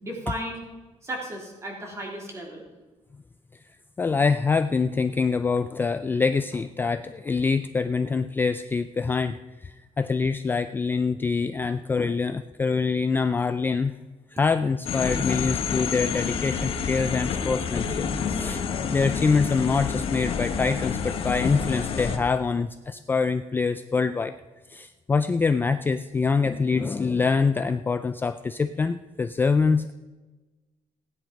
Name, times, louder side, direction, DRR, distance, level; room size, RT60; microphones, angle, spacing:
voice 1, 0.0-0.6 1.0-2.6, right 1 dB, 25° right, -1 dB, 3.4 m, -34 dB
voice 2, 4.0-13.9 14.3-18.6 18.9-24.3 24.7-29.9, left 4 dB, 15° left, 10 dB, 0.3 m, -25 dB
sound 1, 14.9-22.2, left 6 dB, 50° left, 1.4 m, -28 dB
16.0 x 10.0 x 5.3 m, 1.2 s
cardioid pair, 155°, 12 cm